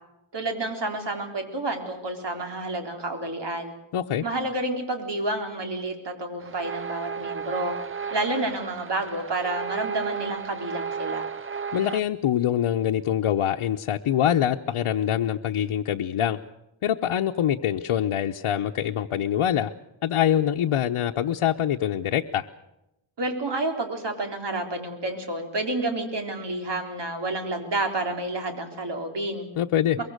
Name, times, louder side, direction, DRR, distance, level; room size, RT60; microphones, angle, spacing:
voice 1, 0.3-3.7 4.2-7.8 8.1-11.3 23.2-29.5, right 2 dB, 55° right, 4 dB, 3.9 m, -29 dB
voice 2, 3.9-4.2 11.7-16.4 16.8-19.7 20.0-22.5 29.6-30.0, left 10 dB, 85° left, 2 dB, 0.9 m, -24 dB
sound 1, 6.4-12.0, right 6 dB, 25° right, 0.7 m, -33 dB
23.0 x 22.5 x 6.6 m, 0.88 s
wide cardioid pair, 130°, 50 cm